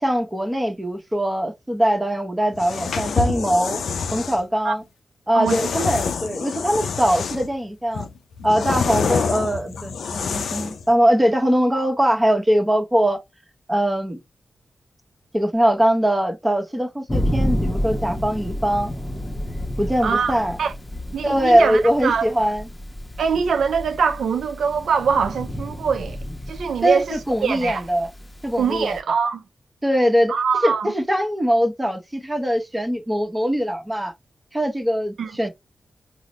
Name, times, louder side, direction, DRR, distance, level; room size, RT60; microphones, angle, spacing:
voice 1, 0.0-3.8 4.1-4.8 5.3-8.1 8.4-13.2 13.7-14.2 15.3-18.9 19.8-20.6 21.2-22.7 26.8-28.1 28.4-29.0 29.8-30.3 30.6-34.1 34.5-35.5, equal, 20° right, 0.9 m, -21 dB
sound 1, 2.5-4.4 5.5-7.5 7.9-10.8, left 5 dB, 85° left, 0.4 m, -26 dB
Thunder, 17.1-29.0, equal, 25° left, 0.8 m, -30 dB
voice 2, 20.0-20.7 21.1-22.3 23.2-26.2 26.5-27.8 28.6-29.4 30.3-30.9 35.2-35.3, right 6 dB, 90° right, 0.3 m, -23 dB
3.9 x 2.0 x 3.1 m
cardioid pair, 50°, 0 cm